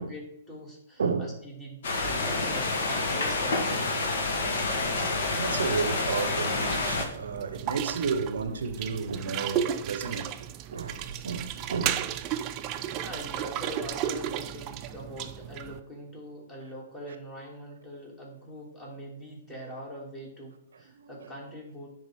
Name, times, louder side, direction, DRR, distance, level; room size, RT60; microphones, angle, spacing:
voice 1, 0.0-3.9 12.9-21.9, equal, 20° left, 2.4 m, -43 dB
voice 2, 1.0-1.4 5.3-10.3 10.7-12.1 21.0-21.1, right 5 dB, 80° right, 0.6 m, -32 dB
sound 1, 1.8-7.1, left 3 dB, 65° left, 1.3 m, -28 dB
sound 2, 6.5-15.8, right 10 dB, 35° right, 0.4 m, -34 dB
9.9 x 3.7 x 3.5 m
hypercardioid pair, 125°, 0 cm